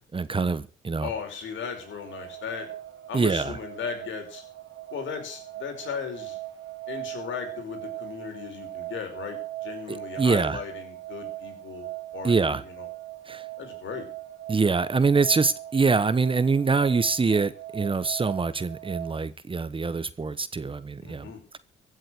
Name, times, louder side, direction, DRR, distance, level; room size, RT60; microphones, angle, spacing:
voice 1, 0.0-1.1 3.1-3.6 9.9-10.6 12.2-12.6 13.3-13.4 14.5-21.6, right 4 dB, 25° right, 1.1 m, -25 dB
voice 2, 1.0-2.7 3.1-4.4 4.9-6.4 6.9-12.9 13.6-14.1 21.0-21.4, left 6 dB, 75° left, 5.3 m, -37 dB
sound 1, 1.2-19.3, right 15 dB, 75° right, 3.1 m, -40 dB
15.5 x 7.8 x 7.9 m
cardioid pair, 90°, 20 cm